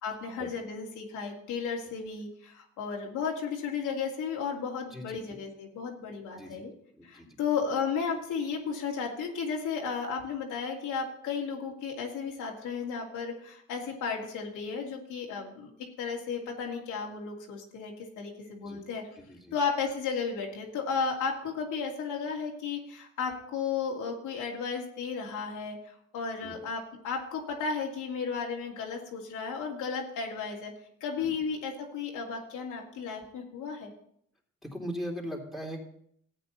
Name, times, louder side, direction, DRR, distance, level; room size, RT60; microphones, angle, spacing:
voice 1, 0.0-6.7 7.0-15.7 16.0-19.0 19.5-30.7 31.0-33.9, left 5 dB, 85° left, -1 dB, 2.6 m, -34 dB
voice 2, 7.0-7.3 18.6-18.8 19.2-19.5 26.4-26.5 31.2-31.3 34.6-35.8, equal, ahead, -1 dB, 3.3 m, -39 dB
14.5 x 8.7 x 4.1 m, 0.68 s
cardioid pair, 90°, 30 cm